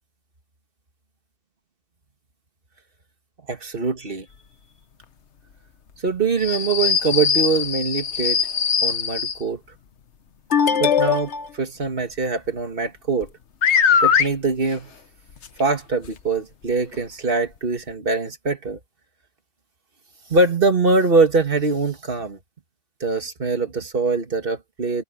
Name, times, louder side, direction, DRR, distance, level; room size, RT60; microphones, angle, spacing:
voice 1, 3.5-4.3 6.0-8.4 8.8-9.6 10.8-13.3 14.0-14.9 15.6-18.8 20.3-22.4 23.0-25.0, right 3 dB, 50° right, 2.1 m, -23 dB
sound 1, 6.4-9.4 10.5-11.5 13.2-13.3 13.6-14.3 15.4-15.5 16.0-16.1 16.9-17.0, left 7 dB, 70° left, 1.4 m, -20 dB
omnidirectional pair, 1.2 m